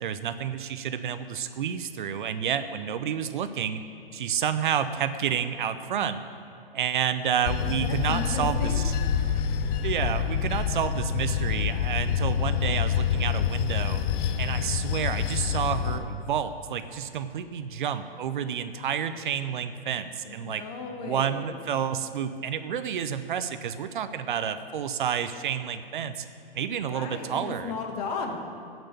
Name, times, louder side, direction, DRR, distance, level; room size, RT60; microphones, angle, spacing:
voice 1, 0.0-3.8 4.1-6.2 6.7-8.9 9.8-14.0 14.4-20.6 21.0-26.2 26.6-27.7, right 8 dB, 55° right, 11 dB, 0.7 m, -30 dB
voice 2, 7.5-8.8 20.2-21.5 26.8-28.4, left 5 dB, 40° left, 3 dB, 1.8 m, -35 dB
Bell / Train, 7.5-16.0, left 8 dB, 20° left, 0.4 m, -27 dB
16.0 x 6.2 x 6.9 m, 2.5 s
figure-of-eight pair, 125°, 30 cm